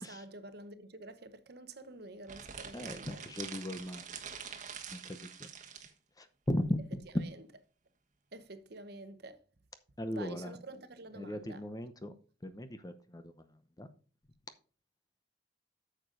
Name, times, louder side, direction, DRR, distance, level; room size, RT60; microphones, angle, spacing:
voice 1, 0.0-3.2 7.1-7.4 8.3-9.4 10.1-11.6, right 2 dB, 55° right, 1.0 m, -49 dB
sound 1, 2.2-5.9, right 7 dB, 40° right, 1.3 m, -46 dB
voice 2, 2.7-4.0 4.9-5.5 6.2-7.2 10.0-10.5 11.2-12.1 12.4-13.3 13.8-13.9, left 1 dB, 20° left, 0.8 m, -37 dB
8.9 x 7.0 x 3.9 m
head